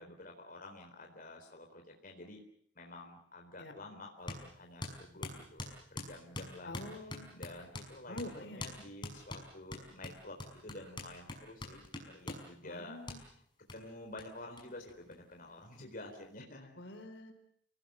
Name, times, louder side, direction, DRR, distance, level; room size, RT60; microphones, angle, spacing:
voice 1, 0.0-2.4 2.8-5.6 5.9-6.7 7.3-10.4 10.6-13.3 13.7-16.8, left 2 dB, 50° left, 2 dB, 4.0 m, -50 dB
sound 1, 4.3-4.4 4.8-7.9 8.2-8.3 8.6-8.8 9.0-12.5 13.1-13.2 13.7-13.8 14.2-14.3 14.6-14.7 14.9-15.6, left 2 dB, 25° left, 5.7 m, -43 dB
voice 2, 6.6-7.2 8.1-8.7 12.6-13.2 16.7-17.3, left 1 dB, 65° left, 7 dB, 4.3 m, -46 dB
29.0 x 19.0 x 7.8 m, 0.64 s
head